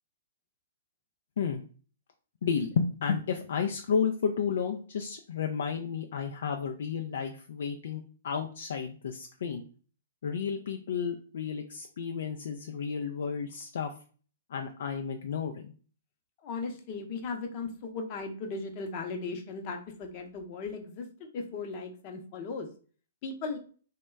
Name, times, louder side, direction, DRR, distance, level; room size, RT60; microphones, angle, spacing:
voice 1, 2.4-9.6 10.2-13.9 14.5-15.7, left 6 dB, 60° left, 4 dB, 0.3 m, -32 dB
voice 2, 16.4-22.7 23.2-23.6, left 4 dB, 40° left, 4 dB, 0.7 m, -37 dB
2.9 x 2.2 x 3.3 m, 0.41 s
figure-of-eight pair, 120°, 0 cm